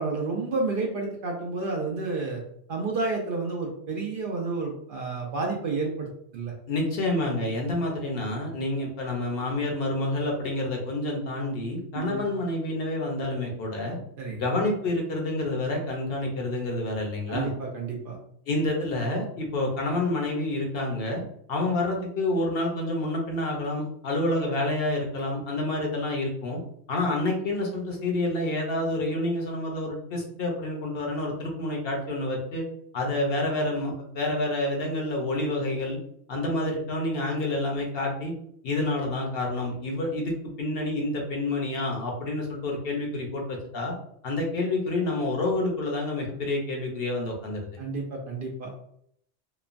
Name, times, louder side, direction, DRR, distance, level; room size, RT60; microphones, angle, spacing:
voice 1, 0.0-2.4 2.7-6.5 11.9-12.2 14.2-14.5 17.3-18.2 47.8-48.8, right 3 dB, 60° right, 0 dB, 0.6 m, -30 dB
voice 2, 6.7-14.0 14.3-17.5 18.5-21.2 21.5-26.6 26.9-32.6 32.9-36.0 36.3-38.3 38.6-43.9 44.2-47.7, left 2 dB, 60° left, 0 dB, 0.8 m, -28 dB
2.9 x 2.1 x 2.4 m, 0.68 s
omnidirectional pair, 1.2 m